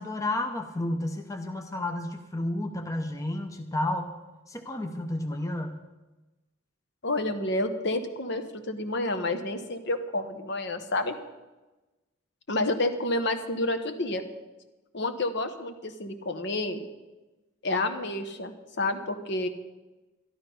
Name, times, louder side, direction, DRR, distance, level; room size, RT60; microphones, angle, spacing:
voice 1, 0.0-4.1 4.5-5.8, left 1 dB, 15° left, 5 dB, 0.7 m, -31 dB
voice 2, 7.0-11.2 12.5-14.2 14.9-16.8 17.6-19.5, left 2 dB, 55° left, 8 dB, 1.1 m, -29 dB
12.5 x 12.0 x 5.4 m, 1.1 s
head